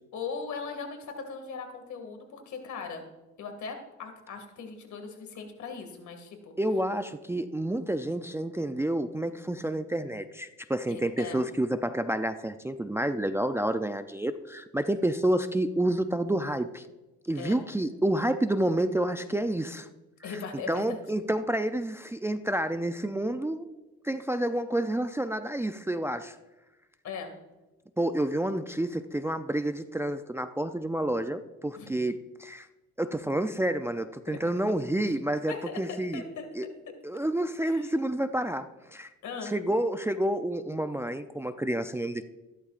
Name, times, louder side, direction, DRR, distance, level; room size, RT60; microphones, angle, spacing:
voice 1, 0.1-3.0 3.4-6.5 10.9-11.4 17.4-17.6 20.2-21.0 27.0-27.3 31.8-31.9 34.3-34.4 35.5-36.5 37.6-37.9 39.2-39.5, left 5 dB, 70° left, 5 dB, 2.2 m, -39 dB
voice 2, 6.6-16.9 17.2-19.9 20.2-20.4 20.7-23.7 24.0-26.4 28.0-32.7 33.0-36.2 36.5-36.7 37.0-38.7 38.9-39.1 39.4-42.2, right 1 dB, 10° right, 9 dB, 0.4 m, -29 dB
14.0 x 12.0 x 2.5 m, 1.1 s
cardioid pair, 90°, 30 cm